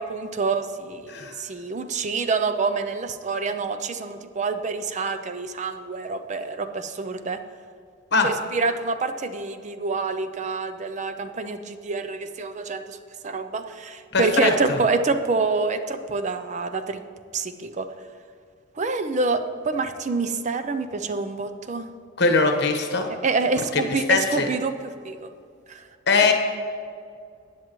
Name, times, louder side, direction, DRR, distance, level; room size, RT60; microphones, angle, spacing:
voice 1, 0.0-7.4 8.2-13.0 13.2-17.0 17.3-17.9 18.8-21.9 23.2-25.3 25.7-25.8, right 4 dB, 35° right, 9 dB, 0.5 m, -27 dB
voice 2, 14.1-14.8 22.2-23.1 23.7-24.5 26.1-26.3, left 4 dB, 60° left, 4 dB, 1.3 m, -21 dB
14.5 x 9.3 x 3.1 m, 2.3 s
head